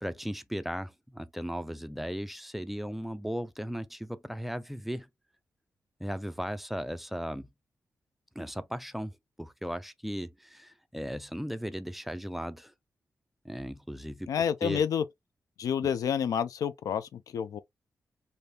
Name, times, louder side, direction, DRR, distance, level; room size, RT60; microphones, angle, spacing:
voice 1, 0.0-5.1 6.0-7.5 8.4-9.1 9.4-12.7 13.4-14.3 14.6-14.8, equal, 5° right, 0.4 m, -36 dB
voice 2, 14.3-15.0 15.6-17.6, left 8 dB, 80° left, 0.4 m, -29 dB
3.4 x 2.7 x 2.7 m
cardioid pair, 85°, 6 cm